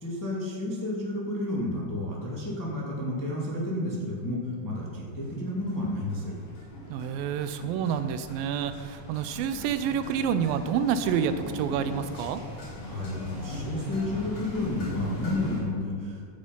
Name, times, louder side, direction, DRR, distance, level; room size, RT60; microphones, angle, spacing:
voice 1, 0.0-6.3 12.8-16.2, left 1 dB, 10° left, -4 dB, 1.2 m, -31 dB
sound 1, 4.5-4.8 5.1-15.6, left 1 dB, 50° left, 4.2 m, -39 dB
voice 2, 6.9-12.4, right 8 dB, 85° right, 11 dB, 2.3 m, -28 dB
13.0 x 8.4 x 5.3 m, 2.4 s
omnidirectional pair, 4.1 m